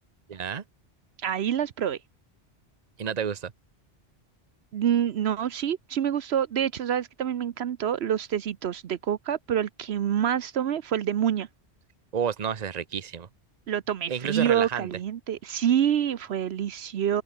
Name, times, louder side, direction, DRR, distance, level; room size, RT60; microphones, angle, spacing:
voice 1, 0.3-0.6 3.0-3.5 12.1-13.3 14.1-14.9, right 7 dB, 40° right, 1.0 m, -30 dB
voice 2, 1.2-2.0 4.7-11.5 13.7-17.2, right 9 dB, 75° right, 1.0 m, -27 dB
open air
omnidirectional pair, 1.1 m